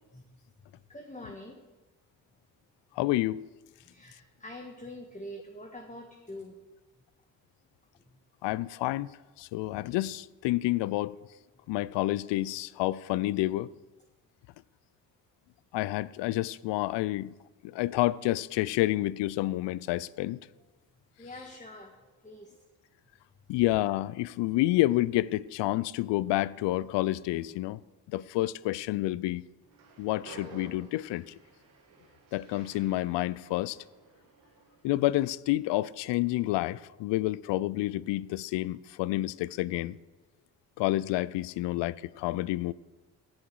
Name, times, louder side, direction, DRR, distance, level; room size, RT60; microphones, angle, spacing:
voice 1, 0.9-1.6 3.0-3.1 3.8-6.5 21.2-22.6, left 1 dB, 15° left, 1.5 m, -45 dB
voice 2, 3.0-3.5 8.4-9.1 9.4-11.2 11.7-13.7 15.7-17.3 17.6-20.4 23.5-27.8 28.1-29.4 30.0-31.4 32.3-33.8 34.8-40.0 40.8-42.7, left 17 dB, 60° left, 0.5 m, -29 dB
Train, 29.6-34.9, right 3 dB, 85° right, 1.9 m, -53 dB
17.0 x 7.3 x 4.7 m
hypercardioid pair, 40°, 50 cm